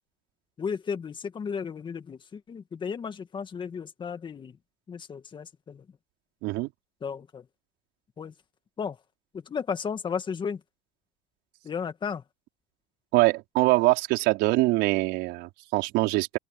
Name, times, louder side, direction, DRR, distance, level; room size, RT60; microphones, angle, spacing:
voice 1, 0.6-4.5 4.9-5.8 7.0-7.4 8.2-8.3 8.8-9.0 9.5-10.6 11.6-12.2, left 6 dB, 25° left, 1.9 m, -34 dB
voice 2, 13.1-16.4, right 21 dB, 70° right, 4.9 m, -23 dB
open air
cardioid pair, 135°, 19 cm